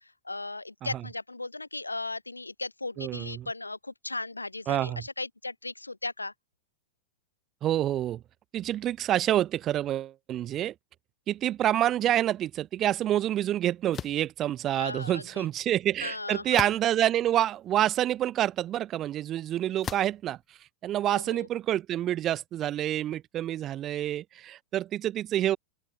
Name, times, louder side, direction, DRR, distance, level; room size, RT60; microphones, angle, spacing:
voice 1, 0.0-6.3 14.8-15.5 16.0-16.4 21.1-21.5, left 2 dB, 80° left, 7.4 m, -37 dB
voice 2, 3.0-3.5 4.7-5.0 7.6-8.2 8.5-10.7 11.3-20.4 20.8-25.6, right 12 dB, 30° right, 3.7 m, -27 dB
sound 1, 13.9-14.3 16.5-17.1 17.8-17.9 19.8-20.2, left 8 dB, 25° left, 4.3 m, -36 dB
open air
figure-of-eight pair, 90°, 0 cm